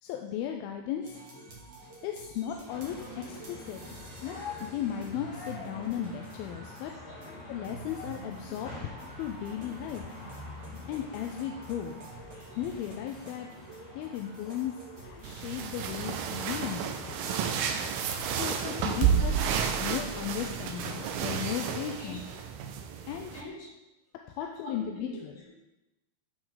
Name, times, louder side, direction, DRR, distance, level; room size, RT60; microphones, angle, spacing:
voice 1, 0.0-1.2 2.0-3.8 4.2-6.9 7.5-8.9 9.2-10.2 10.9-12.0 12.6-13.5 13.9-14.7 15.0-17.6 18.3-18.6 18.9-19.5 19.8-22.2 23.1-23.4 24.4-25.3, left 10 dB, 80° left, 3 dB, 2.3 m, -36 dB
sound 1, 1.0-19.1, right 3 dB, 50° right, 1.2 m, -49 dB
sound 2, 2.6-20.3, left 3 dB, 45° left, 3.1 m, -47 dB
voice 2, 2.9-3.6 4.6-4.7 5.7-5.8 6.9-7.5 8.4-8.5 9.0-9.1 9.6-9.7 10.3-10.4 18.6-19.2 20.1-20.5 20.8-21.2 21.4-22.2 23.3-23.8 24.6-25.5, left 1 dB, 60° left, -8 dB, 4.6 m, -46 dB
sound 3, 15.2-23.4, right 7 dB, 80° right, 2.5 m, -31 dB
11.5 x 4.7 x 3.9 m, 0.96 s
omnidirectional pair, 4.4 m